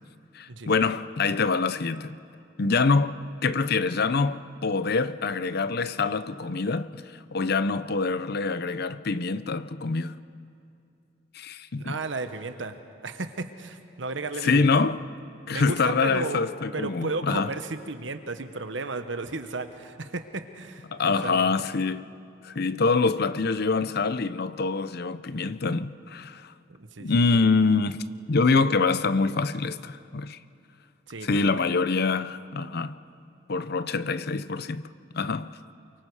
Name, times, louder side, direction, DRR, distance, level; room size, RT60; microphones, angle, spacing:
voice 1, 0.3-2.2 2.6-7.0 7.3-10.2 11.3-12.0 14.4-15.0 15.5-17.5 20.9-22.1 22.4-26.5 27.0-28.0 28.3-30.4 31.2-33.0 33.5-35.6, left 4 dB, 55° left, 0.7 m, -25 dB
voice 2, 11.8-12.8 13.0-14.7 15.5-16.4 16.7-21.5 26.7-27.4 31.1-31.8, right 3 dB, 75° right, 1.2 m, -34 dB
29.0 x 23.5 x 4.9 m
head